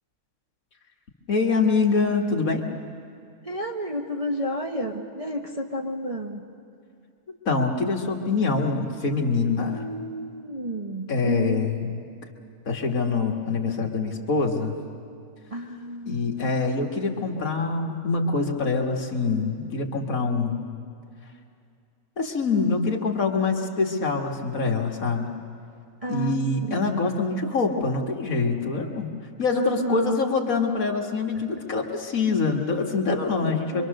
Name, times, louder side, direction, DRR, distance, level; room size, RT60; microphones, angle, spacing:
voice 1, 1.3-2.6 7.3-9.9 11.1-12.0 12.7-14.7 16.1-20.6 22.2-25.3 26.1-29.1 29.4-33.9, left 4 dB, 60° left, 1 dB, 2.2 m, -25 dB
voice 2, 3.4-6.4 9.7-11.7 15.5-16.2 26.0-27.2 29.6-30.4 33.7-33.9, equal, 25° right, 0 dB, 1.1 m, -31 dB
25.0 x 24.0 x 6.5 m, 2.4 s
omnidirectional pair, 1.7 m